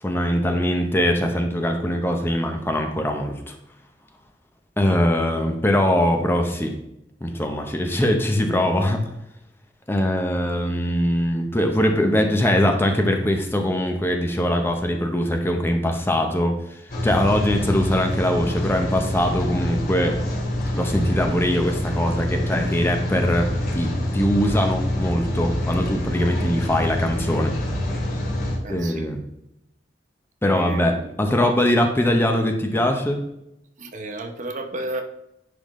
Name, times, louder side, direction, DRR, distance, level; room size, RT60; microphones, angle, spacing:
voice 1, 0.0-3.5 4.8-6.7 7.2-9.0 9.9-20.2 20.7-23.5 23.7-27.5 28.7-29.2 30.4-33.2, equal, 15° left, 4 dB, 0.7 m, -22 dB
Rain, 16.9-28.6, left 1 dB, 55° left, 2.4 m, -26 dB
voice 2, 28.6-29.1 30.4-31.1 33.8-35.0, right 2 dB, 45° right, 5 dB, 0.8 m, -32 dB
10.5 x 3.8 x 3.1 m, 0.82 s
head